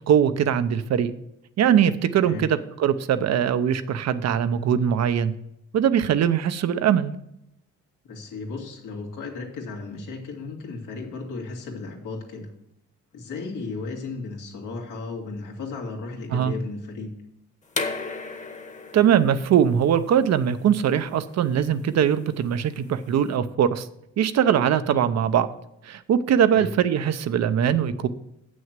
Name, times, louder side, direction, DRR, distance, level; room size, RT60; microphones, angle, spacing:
voice 1, 0.1-1.1 1.6-5.3 5.7-7.1 16.3-16.5 18.9-23.9 24.2-25.5 25.8-28.1, right 9 dB, 60° right, 12 dB, 0.7 m, -21 dB
voice 2, 8.0-12.5 13.1-17.1 26.5-26.7, left 3 dB, 85° left, 0 dB, 2.3 m, -35 dB
sound 1, 17.7-23.3, left 4 dB, 25° left, 1.1 m, -36 dB
7.9 x 6.3 x 7.4 m, 0.81 s
cardioid pair, 90°, 30 cm